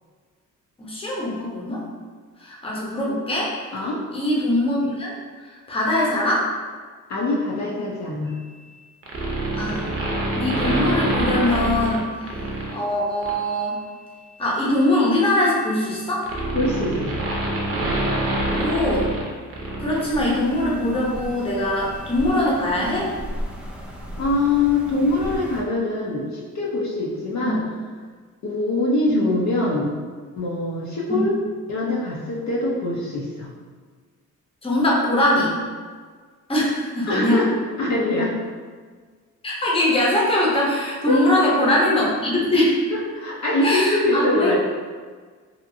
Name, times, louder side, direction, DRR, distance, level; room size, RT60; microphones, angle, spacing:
voice 1, 0.8-1.8 2.4-3.5 4.1-5.2 5.7-6.5 9.6-9.9 10.3-12.1 12.4-13.8 14.4-16.3 18.5-19.1 19.8-23.2 27.4-27.6 29.1-29.3 31.1-31.3 34.6-35.6 36.5-37.4 39.4-42.8 43.6-44.5, left 1 dB, 15° left, -5 dB, 0.8 m, -22 dB
voice 2, 7.1-8.3 16.5-17.1 24.2-27.6 28.4-29.9 30.4-31.3 31.7-33.5 37.1-37.5 37.8-38.4 41.1-41.4 43.2-44.6, left 2 dB, 60° left, -4 dB, 0.7 m, -23 dB
sound 1, 9.0-12.7 13.2-13.5 14.7-20.0 20.3-20.4, right 1 dB, 45° right, 0.6 m, -26 dB
sound 2, 19.9-25.6, equal, 5° right, 0.3 m, -35 dB
2.7 x 2.5 x 2.6 m, 1.6 s
cardioid pair, 95°, 32 cm